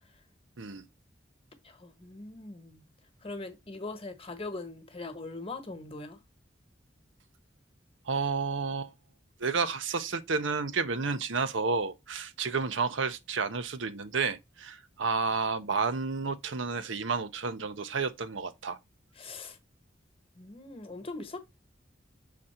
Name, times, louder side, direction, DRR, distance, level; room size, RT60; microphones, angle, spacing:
voice 1, 1.6-2.8 3.2-6.2 19.2-19.6 20.4-21.4, left 3 dB, 30° left, 1.2 m, -41 dB
voice 2, 8.1-8.9 9.4-18.8, right 4 dB, 80° right, 0.7 m, -31 dB
6.4 x 4.2 x 4.3 m
head